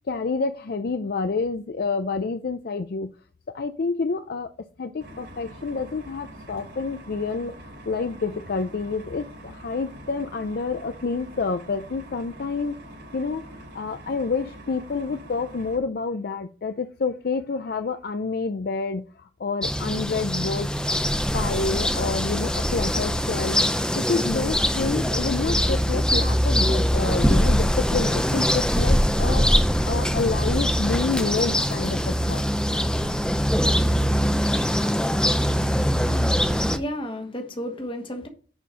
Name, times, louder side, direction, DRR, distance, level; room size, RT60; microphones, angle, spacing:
voice 1, 0.1-3.1 3.5-4.5 4.8-12.8 13.1-13.5 13.7-21.0 21.3-23.6 24.0-32.4, left 4 dB, 55° left, 0.5 m, -28 dB
sound 1, 5.0-15.8, right 1 dB, 70° right, 4.0 m, -44 dB
sound 2, 19.6-36.8, equal, 5° left, 0.6 m, -22 dB
voice 2, 35.7-38.3, equal, 30° left, 1.3 m, -34 dB
10.0 x 4.3 x 5.0 m
head